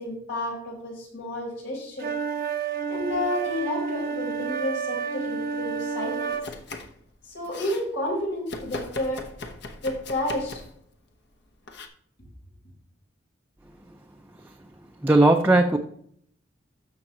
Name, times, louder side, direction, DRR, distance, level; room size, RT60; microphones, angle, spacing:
voice 1, 0.0-2.1 2.9-6.4 7.2-9.3 9.8-10.6, left 1 dB, 80° left, -1 dB, 4.1 m, -31 dB
sound 1, 2.0-6.5, right 6 dB, 50° right, 0.7 m, -30 dB
Domestic sounds home sounds, 6.3-7.0 7.3-7.9 8.5-10.8 11.7-11.9, left 2 dB, 60° left, 1.0 m, -38 dB
voice 2, 15.0-15.8, right 2 dB, 10° right, 2 dB, 0.4 m, -17 dB
13.5 x 5.8 x 3.0 m, 0.67 s
head